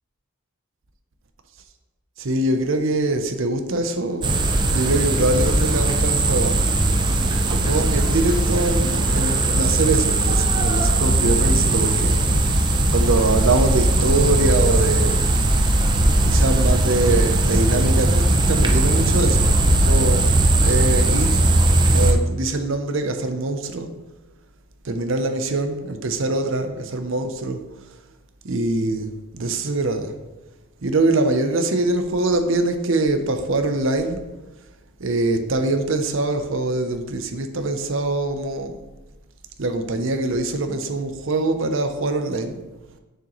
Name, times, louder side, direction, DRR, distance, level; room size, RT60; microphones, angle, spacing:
voice 1, 2.2-4.4 4.7-6.6 7.5-15.3 15.6-15.7 16.2-19.5 19.8-21.5 21.9-23.9 24.8-27.6 28.4-30.1 30.8-34.2 35.0-38.8 39.6-42.6, right 2 dB, 60° right, 0.6 m, -23 dB
sound 1, 4.2-22.1, right 2 dB, 20° right, 0.5 m, -19 dB
6.7 x 6.4 x 3.1 m
head